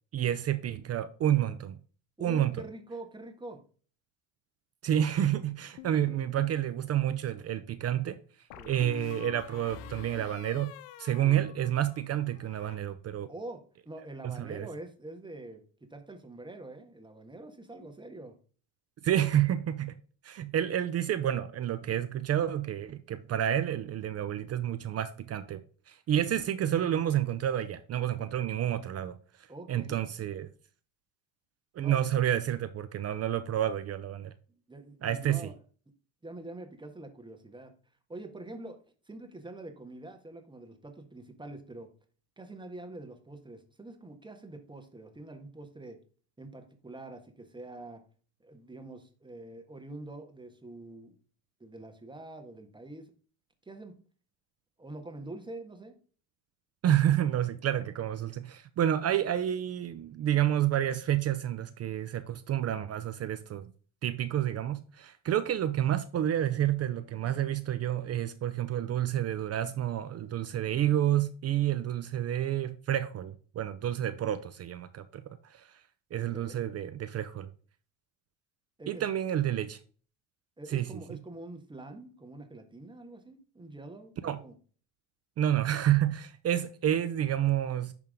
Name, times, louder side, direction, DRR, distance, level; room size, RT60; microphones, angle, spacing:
voice 1, 0.1-1.8 2.2-2.6 4.8-8.2 8.6-10.7 11.0-13.3 14.2-14.7 19.0-19.9 20.2-25.6 25.9-29.2 29.7-30.5 31.7-34.3 35.0-35.5 56.8-63.7 64.0-75.2 75.5-75.7 76.1-77.5 78.9-79.8 80.7-80.9 84.2-84.4 85.4-87.9, right 11 dB, 35° right, 0.6 m, -29 dB
voice 2, 2.2-3.6 8.6-8.7 11.2-11.4 13.3-18.3 29.5-30.0 31.8-32.1 34.7-35.5 36.2-37.7 38.1-38.8 39.1-41.9 42.4-46.0 46.4-48.0 48.4-51.2 51.6-53.1 53.6-53.9 54.8-55.9 76.2-76.6 78.8-79.0 80.6-84.1 84.4-84.5, right 2 dB, 10° right, 1.6 m, -45 dB
sound 1, 5.8-6.6 8.5-12.0 12.3-12.8, left 12 dB, 70° left, 0.9 m, -47 dB
10.5 x 3.6 x 3.7 m
supercardioid pair, 100°, 42 cm